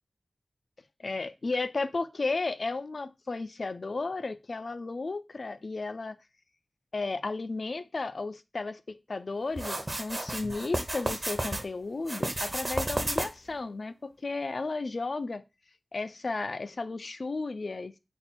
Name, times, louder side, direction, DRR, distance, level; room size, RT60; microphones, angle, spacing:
voice 1, 1.0-6.2 6.9-15.4 15.9-18.0, left 3 dB, 60° left, 0.3 m, -34 dB
sound 1, 9.6-11.6 12.0-13.5, right 1 dB, 30° right, 0.8 m, -32 dB
4.2 x 2.2 x 4.2 m
wide cardioid pair, 75°, 0 cm